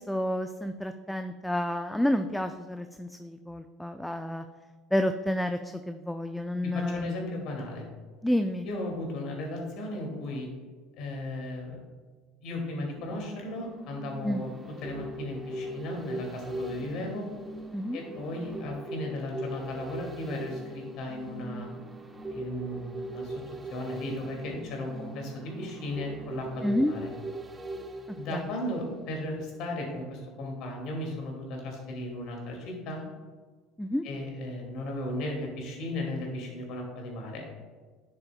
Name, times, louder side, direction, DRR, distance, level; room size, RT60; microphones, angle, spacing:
voice 1, 0.0-4.5 4.9-7.1 8.2-8.7 14.2-14.4 17.7-18.0 26.6-26.9 28.1-28.5 33.8-34.0, left 1 dB, 5° left, 8 dB, 0.4 m, -30 dB
voice 2, 6.6-7.9 8.6-10.5 11.0-11.8 12.4-14.5 14.8-17.3 17.9-21.7 22.3-23.3 23.7-27.1 28.2-33.1 34.0-37.4, left 1 dB, 60° left, 0 dB, 2.3 m, -36 dB
sound 1, 13.0-29.2 29.6-29.7, right 1 dB, 20° right, 0.9 m, -40 dB
10.5 x 6.8 x 2.3 m, 1.4 s
hypercardioid pair, 70°, 0 cm